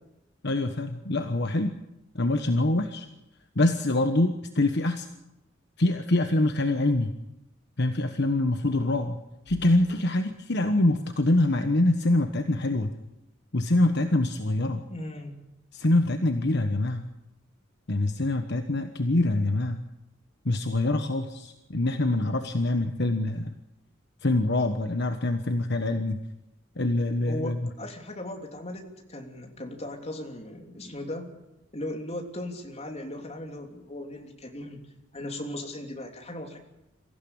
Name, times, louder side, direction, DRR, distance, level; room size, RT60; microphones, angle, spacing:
voice 1, 0.4-1.7 2.1-3.1 3.6-5.1 5.8-7.1 7.8-9.2 9.5-12.9 13.5-14.8 15.7-17.0 17.9-19.8 20.4-23.5 24.2-26.2 26.8-27.6, left 2 dB, 60° left, 7 dB, 1.2 m, -25 dB
voice 2, 14.9-15.4 27.2-31.3 31.7-34.8 35.1-36.6, left 1 dB, 35° left, 3 dB, 3.2 m, -37 dB
24.0 x 15.5 x 8.8 m, 0.91 s
head